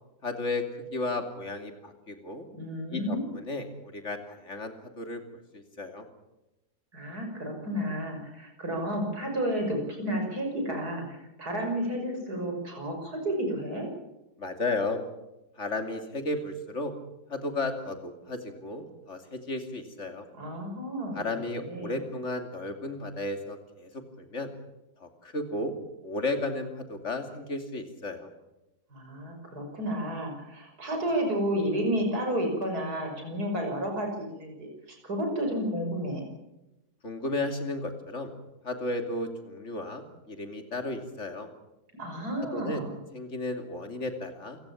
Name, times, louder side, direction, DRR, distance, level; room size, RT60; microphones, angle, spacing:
voice 1, 0.2-2.5 2.9-5.2 5.5-6.1 14.4-15.0 15.6-16.9 17.3-20.2 21.1-24.5 25.0-25.7 26.0-28.3 37.0-38.3 38.6-41.5 42.5-42.8 43.1-44.6, left 2 dB, 45° left, 6 dB, 3.1 m, -34 dB
voice 2, 2.5-3.3 6.9-13.9 20.3-22.0 28.9-36.2 42.0-43.0, equal, 75° right, 2 dB, 6.5 m, -31 dB
28.0 x 16.5 x 7.3 m, 0.97 s
omnidirectional pair, 1.7 m